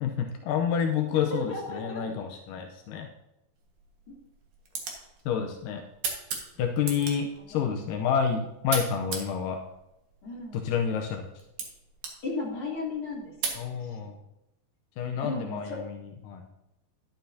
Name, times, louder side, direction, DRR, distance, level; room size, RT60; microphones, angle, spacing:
voice 1, 0.0-3.1 5.3-5.8 6.6-9.6 10.5-11.3 13.5-14.2 15.0-16.5, left 7 dB, 80° left, 3 dB, 1.9 m, -29 dB
voice 2, 1.3-2.0 7.5-7.9 10.2-10.7 12.2-13.6 14.0-14.1 15.2-15.8, left 2 dB, 35° left, -4 dB, 3.2 m, -35 dB
sound 1, 3.6-13.6, right 5 dB, 55° right, 2.7 m, -39 dB
11.5 x 11.5 x 2.8 m, 0.90 s
omnidirectional pair, 4.8 m